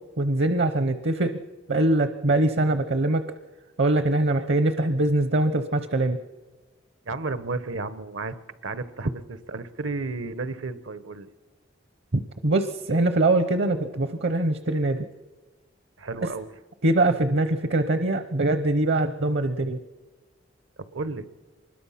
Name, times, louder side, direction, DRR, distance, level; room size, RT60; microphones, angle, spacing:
voice 1, 0.2-1.4 1.7-3.2 3.8-6.2 12.4-15.1 16.2-16.3 16.8-19.8, right 2 dB, 55° right, 10 dB, 0.8 m, -23 dB
voice 2, 7.0-8.4 8.6-11.3 16.0-16.5 20.8-21.3, right 3 dB, 80° right, 14 dB, 1.0 m, -33 dB
24.5 x 21.0 x 5.8 m, 1.3 s
head